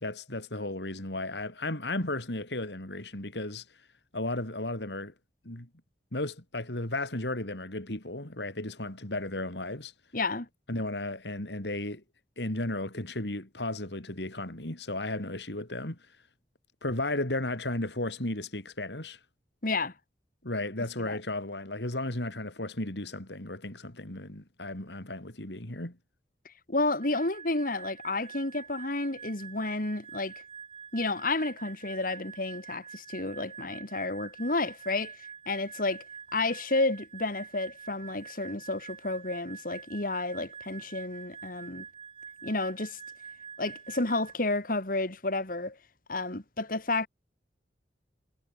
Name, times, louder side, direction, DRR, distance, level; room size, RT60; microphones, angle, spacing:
voice 1, 0.0-3.9 4.1-5.1 5.5-5.7 6.1-9.9 10.7-12.0 12.4-16.2 16.8-19.2 20.4-26.0, left 2 dB, 75° left, 3.9 m, -34 dB
voice 2, 10.1-10.5 19.6-19.9 21.0-21.2 26.4-30.3 30.9-35.2 35.5-36.0 36.3-41.8 42.4-43.0 43.6-45.8 46.1-47.1, left 2 dB, 55° left, 2.9 m, -31 dB
sound 1, 27.0-44.3, right 6 dB, 35° right, 3.8 m, -46 dB
head